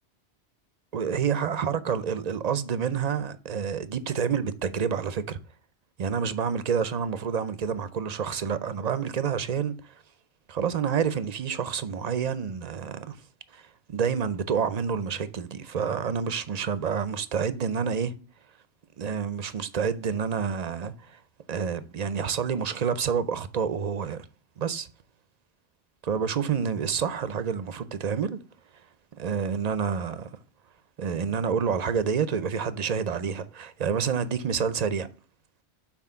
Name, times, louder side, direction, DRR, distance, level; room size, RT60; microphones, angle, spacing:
voice 1, 0.9-5.4 6.0-9.9 10.5-13.2 13.5-18.1 19.0-21.2 21.5-24.3 24.6-24.9 26.0-28.4 29.2-30.4 31.0-35.1, right 7 dB, 50° right, 0.5 m, -28 dB
6.0 x 4.2 x 5.5 m
omnidirectional pair, 1.1 m